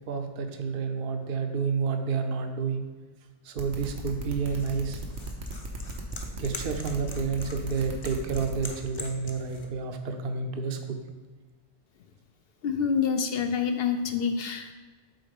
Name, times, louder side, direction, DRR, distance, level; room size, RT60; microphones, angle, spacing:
voice 1, 0.1-2.9 3.4-5.0 6.3-11.0, right 5 dB, 55° right, 6 dB, 0.8 m, -30 dB
sound 1, 3.6-8.6, right 2 dB, 85° right, 1.4 m, -36 dB
sound 2, 3.7-9.7, left 2 dB, 30° left, 0.6 m, -43 dB
voice 2, 12.6-14.7, left 6 dB, 65° left, 7 dB, 0.7 m, -27 dB
7.8 x 4.0 x 5.2 m, 1.3 s
omnidirectional pair, 1.2 m